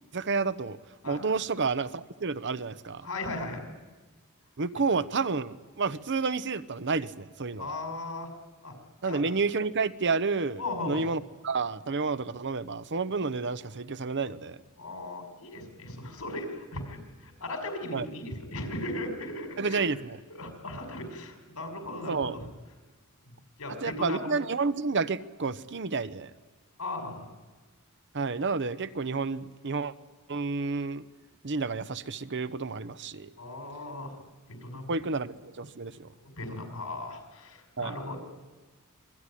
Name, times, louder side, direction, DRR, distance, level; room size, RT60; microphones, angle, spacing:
voice 1, 0.1-0.8 1.0-3.1 4.6-7.7 9.0-14.6 17.9-18.1 19.6-20.2 22.0-22.4 23.8-26.3 28.1-29.9 30.3-31.0 31.4-33.3 34.9-36.1 37.8-38.0, right 4 dB, 55° right, 14 dB, 0.9 m, -30 dB
voice 2, 3.0-3.6 7.6-8.3 8.6-8.7 9.0-9.2 10.6-11.1 14.8-19.8 20.3-22.4 23.6-24.2 26.8-27.3 33.4-34.2 34.5-34.9 36.1-38.2, left 2 dB, 85° left, 4 dB, 5.6 m, -37 dB
25.5 x 22.5 x 10.0 m, 1.3 s
head